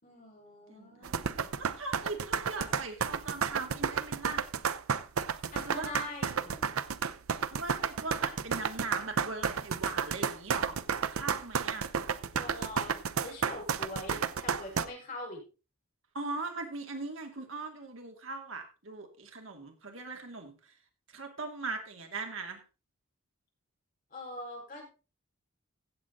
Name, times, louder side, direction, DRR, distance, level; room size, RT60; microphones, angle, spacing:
voice 1, 0.0-1.5 5.5-6.7 12.3-15.4 24.1-24.8, left 2 dB, 40° left, 0 dB, 5.1 m, -43 dB
voice 2, 0.7-1.2 1.6-4.4 5.6-5.9 7.5-10.8 11.1-11.9 16.1-20.7 21.1-22.6, right 3 dB, 70° right, 4 dB, 2.3 m, -40 dB
sound 1, 1.0-14.9, right 6 dB, 90° right, 0.7 m, -31 dB
16.0 x 7.6 x 3.9 m, 0.32 s
head